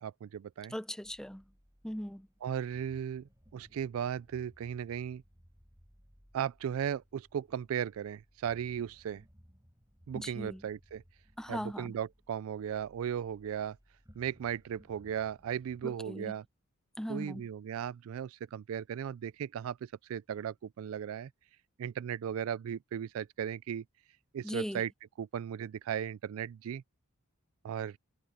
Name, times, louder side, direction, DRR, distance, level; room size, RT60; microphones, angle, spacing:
voice 1, 0.0-0.7 2.4-5.2 6.3-9.2 10.1-11.0 11.5-13.8 14.2-16.4 17.1-21.3 21.8-23.8 24.3-24.9 25.2-26.8 27.6-28.0, right 8 dB, 80° right, 0.3 m, -36 dB
voice 2, 0.7-1.4 1.8-2.3 10.1-10.6 11.4-11.9 15.8-16.3 17.0-17.5 24.4-24.8, equal, 5° left, 0.7 m, -39 dB
sound 1, 1.0-15.8, equal, 15° right, 6.2 m, -62 dB
head